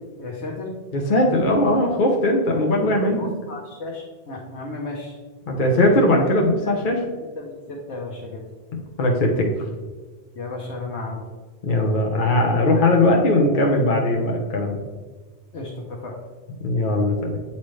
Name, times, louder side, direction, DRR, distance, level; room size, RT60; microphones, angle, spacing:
voice 1, 0.2-0.7 3.2-5.1 6.6-6.7 7.2-8.4 10.3-11.2 15.5-16.1, left 2 dB, 80° left, -2 dB, 1.3 m, -34 dB
voice 2, 0.9-3.3 5.5-7.0 9.0-9.5 11.6-14.8 16.6-17.4, left 1 dB, 50° left, 0 dB, 1.0 m, -19 dB
8.9 x 4.2 x 3.2 m, 1.3 s
omnidirectional pair, 1.1 m